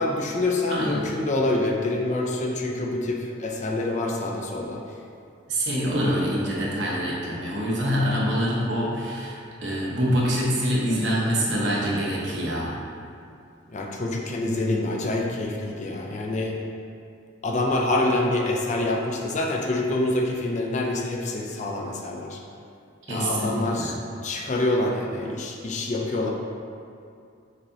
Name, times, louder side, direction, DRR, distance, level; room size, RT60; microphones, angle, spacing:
voice 1, 0.0-4.8 13.7-16.5 17.4-22.4 23.1-26.3, left 2 dB, 40° left, 0 dB, 0.4 m, -26 dB
voice 2, 0.7-1.1 5.5-12.7 23.1-23.9, equal, 65° right, -5 dB, 0.9 m, -25 dB
6.1 x 2.8 x 2.7 m, 2.5 s
head